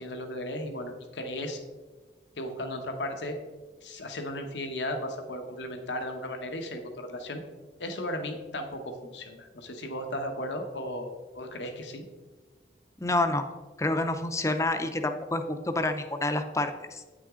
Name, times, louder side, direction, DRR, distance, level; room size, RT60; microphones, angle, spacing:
voice 1, 0.0-1.6 2.4-3.4 3.8-7.4 7.8-8.8 9.1-12.0, left 1 dB, 85° left, 5 dB, 1.1 m, -35 dB
voice 2, 13.0-13.4 13.8-17.0, left 2 dB, 15° left, 8 dB, 0.5 m, -28 dB
9.0 x 6.2 x 3.7 m, 1.3 s
head